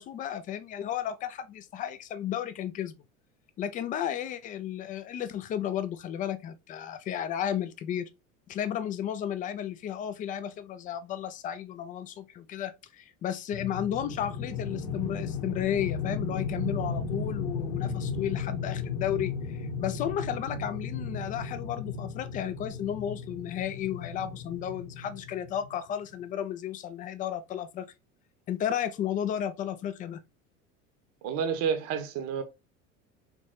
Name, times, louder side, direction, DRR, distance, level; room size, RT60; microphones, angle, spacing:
voice 1, 0.0-2.9 3.6-8.1 8.5-27.8 28.5-30.2, left 10 dB, 20° left, 0.4 m, -33 dB
sound 1, 13.5-25.8, left 5 dB, 55° left, 0.8 m, -35 dB
voice 2, 31.2-32.4, right 7 dB, 40° right, 0.8 m, -29 dB
4.0 x 3.1 x 3.2 m
figure-of-eight pair, 70°, 40 cm